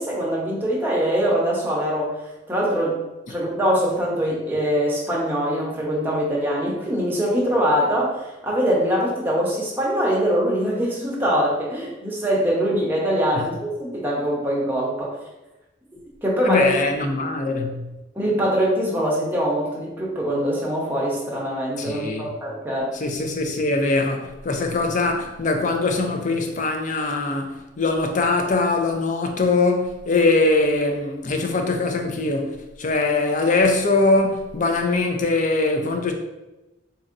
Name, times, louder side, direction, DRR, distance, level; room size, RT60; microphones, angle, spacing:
voice 1, 0.0-2.1 2.5-3.0 3.3-15.2 16.2-16.7 18.2-22.9, equal, 10° right, 0.8 m, -23 dB
voice 2, 16.4-17.9 21.8-22.3 22.9-36.1, left 3 dB, 40° left, 0.4 m, -22 dB
4.0 x 2.7 x 2.5 m
head